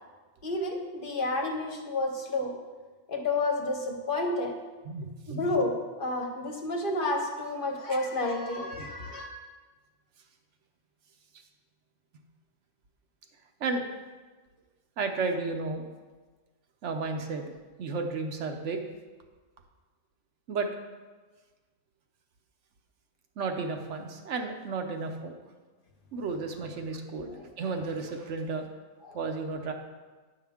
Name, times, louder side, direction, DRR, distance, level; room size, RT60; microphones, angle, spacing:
voice 1, 0.4-2.6 3.1-4.6 5.3-9.3 27.2-27.5 29.0-29.2, left 2 dB, 50° left, 2 dB, 1.0 m, -30 dB
voice 2, 4.8-5.6 7.9-8.0 13.6-13.8 15.0-15.9 16.8-17.5 17.8-18.8 20.5-20.7 23.4-25.3 26.1-28.7 29.1-29.7, right 4 dB, 70° right, 4 dB, 1.0 m, -33 dB
9.5 x 5.6 x 3.5 m, 1.3 s
omnidirectional pair, 1.3 m